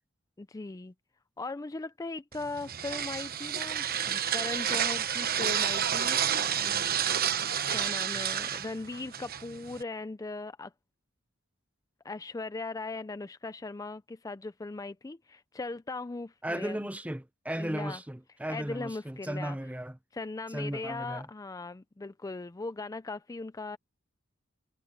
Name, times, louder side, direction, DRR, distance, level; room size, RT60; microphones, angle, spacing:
voice 1, 0.4-0.9 1.4-7.4 7.7-10.7 12.0-16.9 17.6-18.0 18.5-19.6 20.1-23.8, left 3 dB, 15° left, 0.4 m, -39 dB
sound 1, 2.3-9.8, right 9 dB, 50° right, 1.1 m, -30 dB
voice 2, 16.4-20.0 20.5-21.3, right 1 dB, 5° right, 0.7 m, -35 dB
head